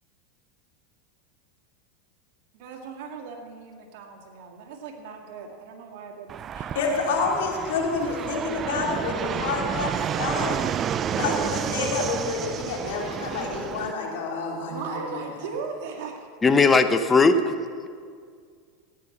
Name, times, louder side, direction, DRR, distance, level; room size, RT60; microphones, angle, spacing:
voice 1, 2.5-6.3 14.7-16.3, right 5 dB, 65° right, 2 dB, 2.1 m, -37 dB
Fixed-wing aircraft airplane, 6.3-13.9, right 9 dB, 35° right, 0.3 m, -30 dB
voice 2, 6.6-10.6 11.1-15.2, left 4 dB, 75° left, -1 dB, 3.0 m, -28 dB
voice 3, 16.4-17.5, left 4 dB, 20° left, 9 dB, 0.9 m, -18 dB
15.0 x 9.8 x 5.9 m, 2.1 s
supercardioid pair, 115°, 0 cm